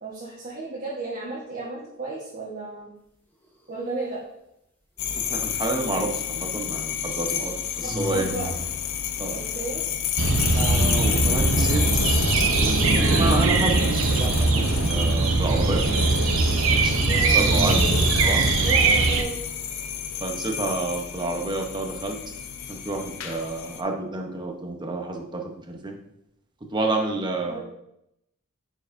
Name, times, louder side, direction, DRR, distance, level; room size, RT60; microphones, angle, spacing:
voice 1, 0.0-2.9 3.7-4.2 7.8-8.5 9.3-9.8 17.1-18.1 18.6-19.4 27.5-27.6, right 2 dB, 45° right, -7 dB, 1.3 m, -33 dB
sound 1, 5.0-23.8, left 9 dB, 75° left, 0.6 m, -31 dB
sound 2, 5.0-5.7 7.8-8.7 12.5-13.6 16.9-18.2, left 1 dB, 10° left, 0.8 m, -32 dB
voice 2, 5.2-8.3 9.2-9.4 10.5-11.9 12.4-17.8 18.2-18.4 20.2-22.2 22.7-26.0 26.7-27.6, right 2 dB, 20° right, 2 dB, 0.9 m, -30 dB
sound 3, 10.2-19.2, right 3 dB, 70° right, 0.6 m, -21 dB
9.4 x 4.7 x 2.6 m, 0.82 s
head